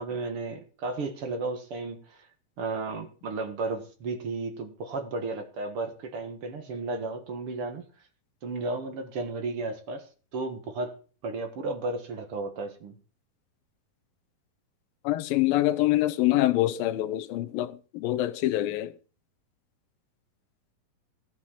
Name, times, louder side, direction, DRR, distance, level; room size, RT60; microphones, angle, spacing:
voice 1, 0.0-2.2 2.6-7.8 8.4-10.1 10.3-11.0 11.2-12.9, right 3 dB, 50° right, 1.9 m, -33 dB
voice 2, 15.0-19.0, left 15 dB, 80° left, 2.3 m, -25 dB
15.0 x 6.3 x 7.0 m
omnidirectional pair, 4.3 m